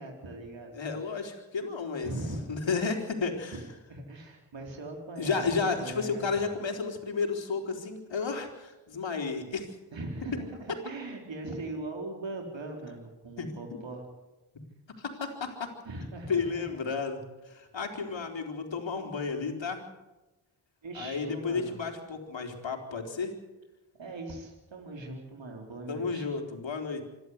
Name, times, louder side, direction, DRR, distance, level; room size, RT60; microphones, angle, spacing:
voice 1, 0.0-0.7 2.0-2.5 3.5-6.3 9.9-14.0 15.8-16.7 20.8-21.8 24.0-26.3, right 2 dB, 65° right, 1 dB, 4.3 m, -40 dB
voice 2, 0.7-2.1 2.5-3.6 5.2-9.7 13.4-13.8 15.0-15.7 16.3-19.8 20.9-23.3 25.9-27.0, left 4 dB, 65° left, 3 dB, 4.1 m, -32 dB
26.5 x 12.5 x 8.0 m, 1.1 s
cardioid pair, 45°, 49 cm